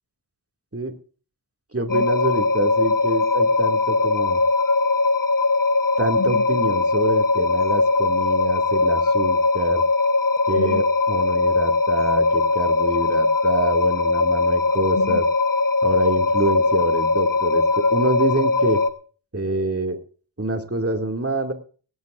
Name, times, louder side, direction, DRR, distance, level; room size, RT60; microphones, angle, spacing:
voice 1, 1.7-4.4 6.0-9.8 10.5-15.2 15.8-18.8 19.3-20.0 20.4-21.5, right 2 dB, 30° right, 5 dB, 2.4 m, -26 dB
sound 1, 1.9-18.9, left 3 dB, 45° left, 1.3 m, -20 dB
17.5 x 17.5 x 2.6 m, 0.39 s
wide cardioid pair, 55°, 46 cm